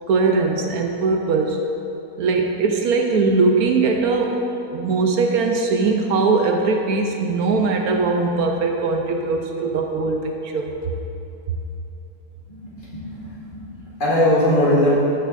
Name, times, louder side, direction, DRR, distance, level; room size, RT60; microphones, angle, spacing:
voice 1, 0.1-1.6 2.2-4.4 4.7-10.9, right 4 dB, 70° right, 3 dB, 1.0 m, -20 dB
voice 2, 12.5-14.9, left 1 dB, 50° left, -7 dB, 2.3 m, -20 dB
13.5 x 6.8 x 2.5 m, 2.8 s
omnidirectional pair, 1.7 m